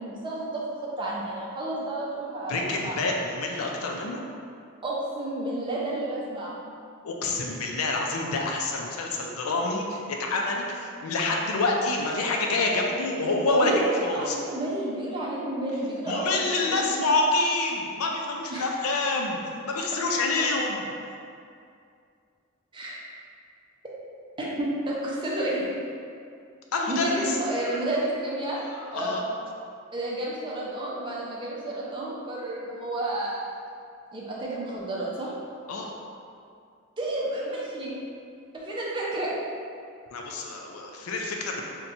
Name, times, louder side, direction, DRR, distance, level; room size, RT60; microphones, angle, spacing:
voice 1, 0.0-3.0 4.8-6.6 13.5-16.8 18.5-18.6 22.7-23.0 24.4-25.7 26.9-29.2 29.9-33.4 34.1-35.3 37.0-37.9 38.5-39.3, right 1 dB, 20° right, -5 dB, 0.5 m, -31 dB
voice 2, 2.5-4.2 7.0-14.4 16.1-20.9 26.7-27.8 28.7-29.3 35.7-35.9 40.1-41.6, left 2 dB, 85° left, 0 dB, 0.4 m, -27 dB
2.7 x 2.2 x 4.0 m, 2.4 s
head